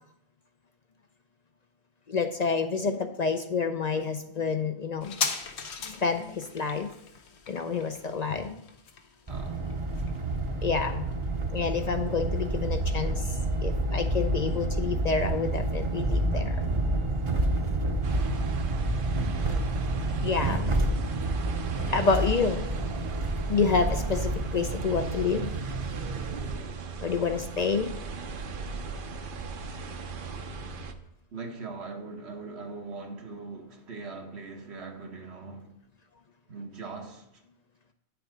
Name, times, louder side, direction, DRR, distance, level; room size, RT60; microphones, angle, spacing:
voice 1, 2.1-5.2 5.9-6.9 7.5-8.6 10.6-11.1 11.5-16.6 20.2-20.7 21.9-22.7 23.5-25.5 27.0-27.9, left 5 dB, 45° left, 0.6 m, -28 dB
sound 1, 5.0-12.1 12.4-12.5, left 5 dB, 85° left, 1.2 m, -38 dB
sound 2, 9.3-26.5, right 2 dB, 30° right, 0.7 m, -29 dB
sound 3, 18.0-30.9, right 4 dB, 60° right, 0.8 m, -38 dB
voice 2, 31.3-35.7 36.5-37.3, right 4 dB, 80° right, 1.5 m, -40 dB
9.1 x 6.9 x 4.9 m
omnidirectional pair, 1.1 m